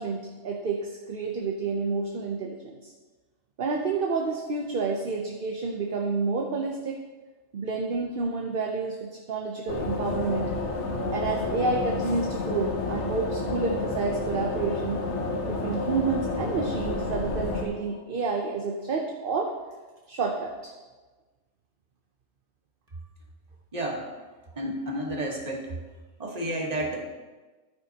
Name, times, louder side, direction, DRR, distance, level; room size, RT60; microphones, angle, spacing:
voice 1, 0.0-2.9 3.6-7.0 7.5-10.5 11.1-15.0 15.5-19.5 20.1-20.7, right 4 dB, 50° right, 1 dB, 0.9 m, -29 dB
sound 1, 9.7-17.6, left 3 dB, 65° left, 1.5 m, -30 dB
voice 2, 23.7-24.0 24.6-25.7 26.2-27.1, right 1 dB, 30° right, 0 dB, 1.5 m, -31 dB
12.5 x 9.2 x 2.9 m, 1.3 s
omnidirectional pair, 1.3 m